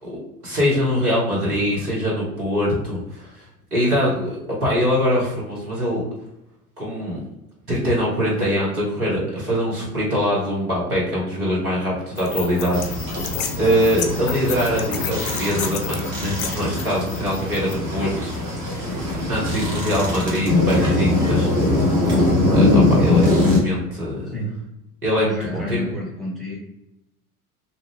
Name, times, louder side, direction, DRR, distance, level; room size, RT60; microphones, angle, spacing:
voice 1, 0.0-3.5 3.7-6.0 6.8-7.2 7.7-13.2 13.6-18.3 19.3-21.5 22.5-24.2 25.0-25.8, equal, 80° right, -5 dB, 1.3 m, -23 dB
sound 1, 12.2-17.7, left 7 dB, 40° left, 0.4 m, -32 dB
sound 2, 12.7-23.6, left 2 dB, 45° right, 1.3 m, -21 dB
voice 2, 25.2-26.6, equal, ahead, -6 dB, 0.9 m, -30 dB
2.5 x 2.4 x 3.2 m, 0.88 s
figure-of-eight pair, 75°, 44 cm